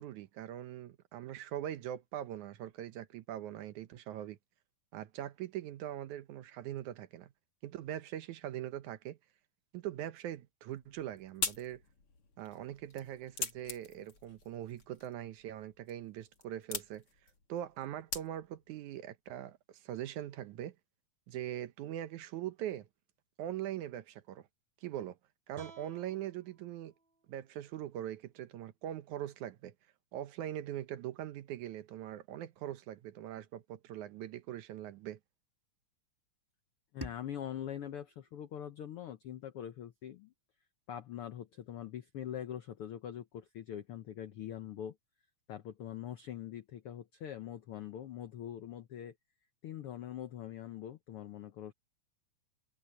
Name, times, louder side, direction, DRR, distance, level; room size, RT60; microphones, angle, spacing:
voice 1, 0.0-4.4 4.9-7.3 7.6-9.2 9.7-11.8 12.4-17.0 17.5-20.8 21.3-22.9 23.4-24.5 24.8-25.2 25.5-26.9 27.3-29.7 30.1-35.2, right 12 dB, 70° right, 2.2 m, -42 dB
sound 1, 10.7-18.7, left 5 dB, 45° left, 3.3 m, -44 dB
sound 2, 25.5-28.7, right 5 dB, 50° right, 3.5 m, -58 dB
voice 2, 36.9-40.3 40.9-45.0 45.5-49.1 49.6-51.7, left 10 dB, 80° left, 1.2 m, -43 dB
sound 3, 37.0-39.9, right 1 dB, 5° right, 3.3 m, -52 dB
omnidirectional pair, 3.7 m